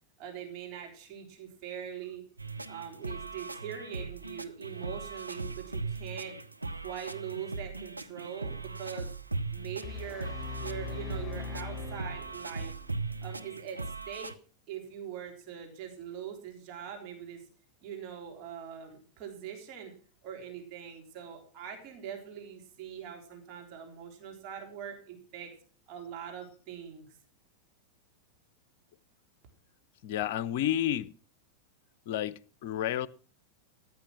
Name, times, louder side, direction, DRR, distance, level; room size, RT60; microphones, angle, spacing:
voice 1, 0.2-2.2 2.7-6.4 6.7-9.1 9.5-10.3 10.6-12.7 13.2-14.3 14.7-17.4 17.8-19.9 20.2-25.5 25.9-27.1, right 8 dB, 40° right, 3.5 m, -42 dB
sound 1, 2.4-14.3, right 3 dB, 85° right, 0.8 m, -39 dB
sound 2, 9.8-12.8, left 4 dB, 30° left, 3.4 m, -40 dB
voice 2, 30.0-31.1 32.1-33.1, left 11 dB, 50° left, 0.6 m, -31 dB
14.5 x 9.6 x 6.0 m
figure-of-eight pair, 90°, 0 cm